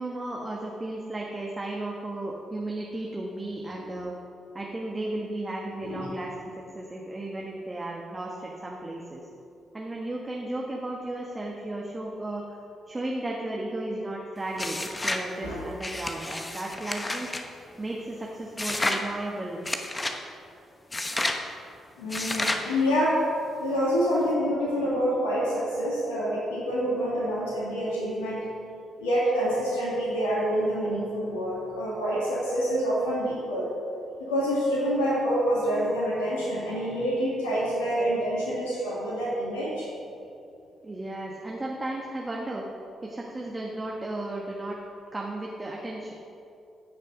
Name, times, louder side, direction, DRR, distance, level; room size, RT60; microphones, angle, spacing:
voice 1, 0.0-4.1 4.5-6.3 6.7-9.2 9.7-12.4 12.9-17.3 17.8-19.6 40.8-42.7 43.0-44.8 45.1-46.1, right 2 dB, 25° right, -2 dB, 1.5 m, -34 dB
sound 1, 14.6-15.3 15.8-17.4 18.6-19.0 19.6-20.2 20.9-21.4 22.1-22.7, left 2 dB, 20° left, 1.1 m, -30 dB
voice 2, 22.0-23.2 23.6-28.5 29.0-33.7 34.2-39.9, equal, 80° left, -6 dB, 2.1 m, -27 dB
15.5 x 6.5 x 5.2 m, 2.6 s
figure-of-eight pair, 40°, 0 cm